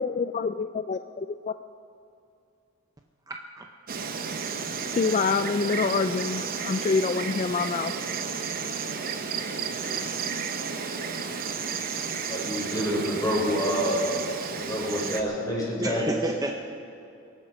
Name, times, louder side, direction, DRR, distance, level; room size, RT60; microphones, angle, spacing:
voice 1, 0.0-1.5 4.9-7.9, left 5 dB, 35° left, 10 dB, 0.3 m, -26 dB
voice 2, 3.3-3.7 3.9-4.0 4.3-4.4 15.8-16.5, right 1 dB, 15° right, 3 dB, 0.6 m, -31 dB
Insect, 3.9-15.2, right 5 dB, 45° right, 0.9 m, -32 dB
voice 3, 12.3-14.0 14.5-16.0, equal, 20° left, -4 dB, 4.5 m, -27 dB
23.5 x 9.1 x 6.0 m, 2.6 s
head